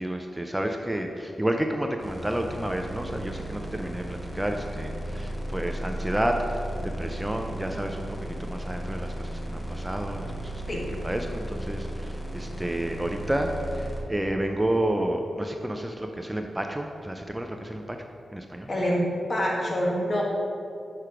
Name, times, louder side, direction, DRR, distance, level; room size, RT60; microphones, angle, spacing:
voice 1, 0.0-10.6 11.0-18.0 18.3-18.7, right 1 dB, 10° right, 3 dB, 0.4 m, -30 dB
sound 1, 2.0-14.0, right 1 dB, 20° left, 1.3 m, -35 dB
voice 2, 18.7-20.2, equal, 45° left, -3 dB, 1.5 m, -26 dB
6.7 x 4.5 x 4.8 m, 2.6 s
cardioid pair, 70°, 0 cm